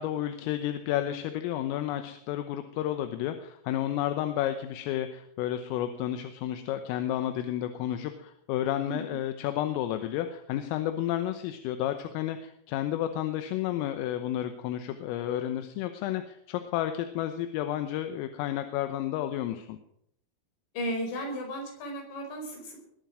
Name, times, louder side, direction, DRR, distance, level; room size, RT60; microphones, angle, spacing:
voice 1, 0.0-19.8, left 12 dB, 80° left, 8 dB, 3.5 m, -31 dB
voice 2, 20.7-22.8, equal, 60° left, 2 dB, 6.7 m, -35 dB
21.0 x 9.2 x 6.2 m, 0.72 s
omnidirectional pair, 6.0 m